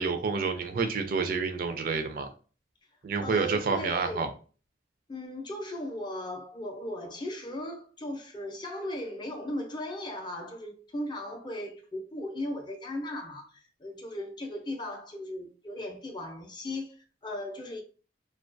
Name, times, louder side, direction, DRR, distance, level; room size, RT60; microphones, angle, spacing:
voice 1, 0.0-2.3 3.0-4.3, right 5 dB, 55° right, 0.3 m, -29 dB
voice 2, 3.2-4.3 5.1-17.8, left 1 dB, 25° left, 0.4 m, -37 dB
2.2 x 2.2 x 2.5 m
head